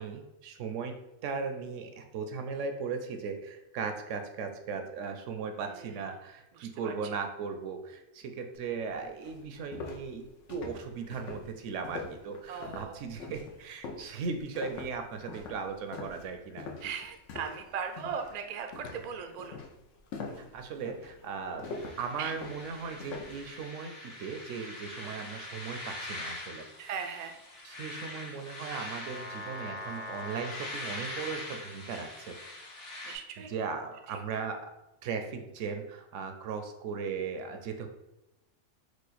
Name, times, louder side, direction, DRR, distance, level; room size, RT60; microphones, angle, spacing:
voice 1, 0.0-16.7 20.4-21.7 22.0-26.7 27.6-32.4 33.4-34.7 35.0-37.9, right 5 dB, 85° right, 6 dB, 0.9 m, -37 dB
voice 2, 5.6-6.1 6.5-6.9 12.5-13.0 16.8-19.6 22.2-22.4 25.0-25.2 26.8-27.4 33.0-33.5 34.1-34.2, right 6 dB, 65° right, 6 dB, 0.4 m, -39 dB
sound 1, 8.7-8.8 9.2-17.7 18.0-18.4 18.7-23.4, left 3 dB, 80° left, 1.0 m, -43 dB
sound 2, 21.6-33.1, left 1 dB, 55° left, 1.2 m, -42 dB
4.8 x 2.2 x 4.1 m, 0.93 s
omnidirectional pair, 1.2 m